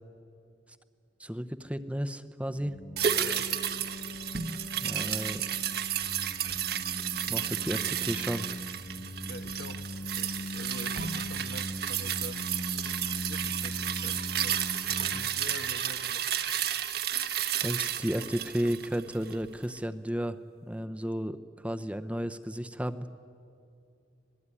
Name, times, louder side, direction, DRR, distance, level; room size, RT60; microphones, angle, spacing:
voice 1, 1.2-2.7 4.8-5.4 7.3-8.5 17.6-23.1, equal, 5° right, 10 dB, 0.7 m, -33 dB
sound 1, 2.5-15.2, left 1 dB, 25° left, 1.3 m, -40 dB
sound 2, 3.0-19.5 19.8-19.9, right 10 dB, 55° right, 1.3 m, -32 dB
voice 2, 3.2-3.5 9.2-12.4 13.1-14.6 14.8-16.3, left 2 dB, 80° left, 8 dB, 1.4 m, -46 dB
26.0 x 19.5 x 9.9 m, 2.5 s
head